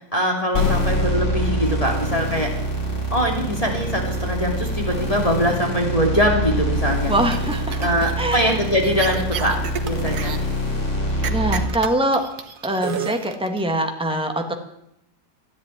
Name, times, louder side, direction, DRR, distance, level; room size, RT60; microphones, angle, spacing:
voice 1, 0.1-2.5 3.1-7.1 7.8-10.4, equal, 20° left, 1 dB, 2.8 m, -22 dB
sound 1, 0.5-11.6, equal, 50° left, 3.4 m, -24 dB
voice 2, 7.1-7.9 8.2-8.6 11.3-12.2 12.6-14.5, right 1 dB, 5° right, 4 dB, 1.7 m, -23 dB
sound 2, 7.3-8.5 8.8-10.4 11.2-13.6, right 8 dB, 75° right, 1.6 m, -30 dB
14.0 x 10.5 x 9.7 m, 0.77 s
omnidirectional pair, 1.6 m